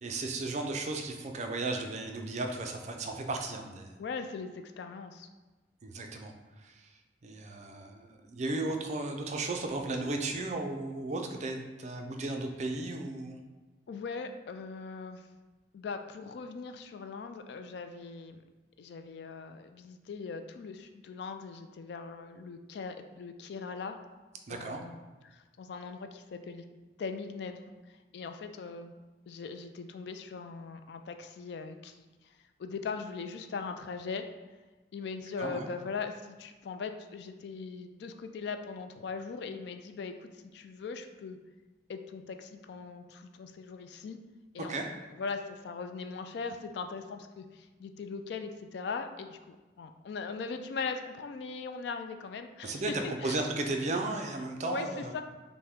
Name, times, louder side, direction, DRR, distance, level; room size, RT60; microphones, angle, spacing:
voice 1, 0.0-3.9 5.8-13.4 24.5-24.8 35.4-35.7 44.7-44.9 52.6-55.2, right 2 dB, 35° right, 3 dB, 0.4 m, -35 dB
voice 2, 4.0-5.3 13.9-15.3 15.7-18.4 18.8-24.0 24.5-25.0 25.2-26.7 27.0-28.9 29.3-34.3 34.9-41.4 41.9-44.2 44.5-53.4 54.6-55.2, left 5 dB, 60° left, 7 dB, 0.3 m, -40 dB
5.6 x 2.1 x 3.5 m, 1.2 s
head